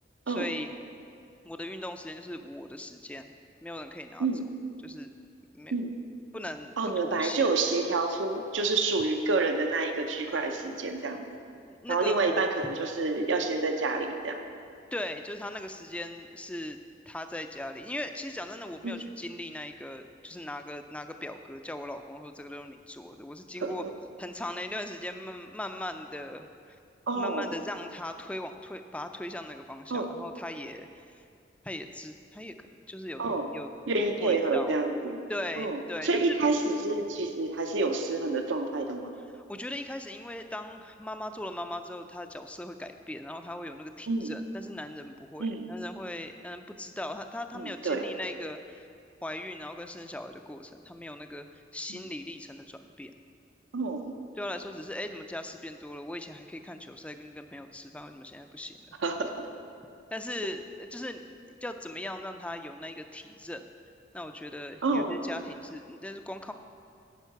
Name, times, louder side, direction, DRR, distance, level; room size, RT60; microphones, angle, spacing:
voice 1, 0.3-0.7 1.4-3.3 3.6-4.3 4.8-5.1 5.5-5.7 6.3-7.5 11.6-12.4 14.9-16.8 17.1-23.9 24.2-26.8 27.1-31.2 31.6-32.5 32.9-33.2 33.5-33.7 34.0-34.7 35.3-36.4 39.2-48.9 49.2-53.1 54.3-58.7 60.1-63.6 64.1-66.5, left 1 dB, 5° left, 7 dB, 0.3 m, -39 dB
voice 2, 6.8-11.3 11.9-14.4 18.8-19.0 23.6-23.9 27.1-27.5 29.9-30.1 33.2-33.5 33.9-35.2 35.6-39.1 44.1-44.3 45.4-45.6 47.5-48.0 53.7-54.1 59.0-59.5 64.8-65.2, right 3 dB, 75° right, 5 dB, 0.7 m, -28 dB
10.0 x 5.4 x 5.8 m, 2.4 s
head